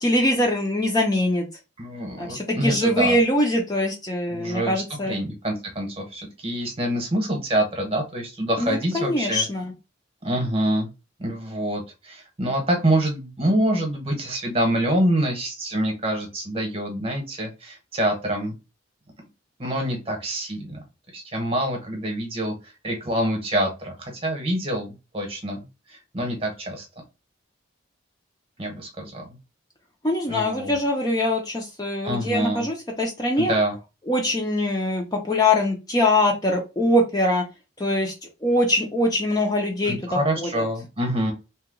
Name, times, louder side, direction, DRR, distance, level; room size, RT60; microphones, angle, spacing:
voice 1, 0.0-1.5 2.2-5.2 8.6-9.7 30.0-33.5 34.1-37.4 37.8-38.1 38.4-40.6, left 1 dB, 20° left, 1 dB, 0.5 m, -23 dB
voice 2, 1.8-3.2 4.3-9.5 10.2-10.9 11.2-18.5 19.6-20.8 21.1-26.9 28.6-29.2 30.3-30.7 32.0-32.7 33.4-33.8 39.8-41.3, right 1 dB, 30° right, 2 dB, 1.0 m, -26 dB
2.8 x 2.2 x 3.6 m, 0.27 s
head